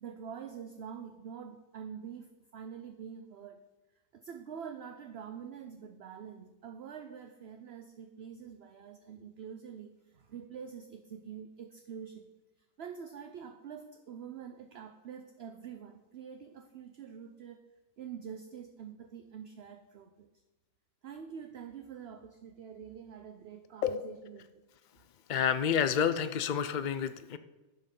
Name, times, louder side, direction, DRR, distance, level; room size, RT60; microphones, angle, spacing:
voice 1, 0.0-3.6 4.1-12.3 12.8-17.6 18.0-20.3 21.0-24.6, right 7 dB, 55° right, 7 dB, 0.8 m, -46 dB
voice 2, 25.3-27.4, left 8 dB, 65° left, 12 dB, 0.4 m, -29 dB
11.5 x 7.7 x 5.4 m, 1.1 s
omnidirectional pair, 1.6 m